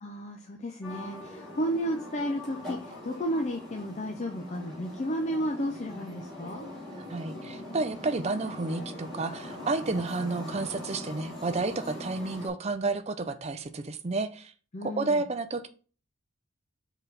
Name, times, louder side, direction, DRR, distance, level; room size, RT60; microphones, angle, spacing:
voice 1, 0.0-6.7 14.7-15.2, equal, 35° left, 3 dB, 0.5 m, -32 dB
sound 1, 0.8-12.5, left 1 dB, ahead, 2.7 m, -42 dB
voice 2, 7.0-14.5 14.8-15.7, right 3 dB, 30° right, 9 dB, 0.5 m, -31 dB
6.2 x 4.0 x 3.9 m, 0.39 s
head